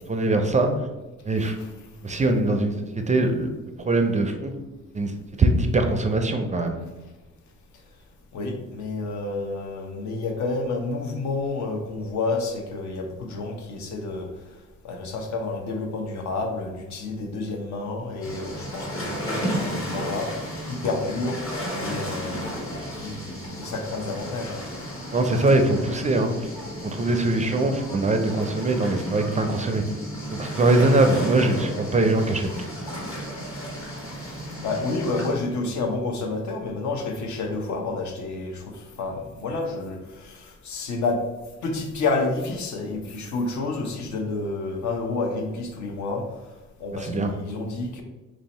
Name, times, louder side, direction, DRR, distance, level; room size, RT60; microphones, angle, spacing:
voice 1, 0.1-0.7 1.3-1.6 2.0-3.5 3.9-4.5 4.9-5.1 5.4-6.8 25.1-26.3 26.8-29.8 30.4-32.5 47.0-47.3, right 2 dB, 25° right, 5 dB, 0.4 m, -22 dB
voice 2, 8.3-14.3 14.8-20.3 20.7-24.6 26.9-27.1 34.1-41.2 41.6-46.3 46.8-48.0, left 3 dB, 65° left, 3 dB, 0.8 m, -30 dB
sound 1, 18.2-35.3, equal, 45° left, 1.4 m, -33 dB
3.2 x 2.7 x 4.1 m, 1.1 s
cardioid pair, 90°, 30 cm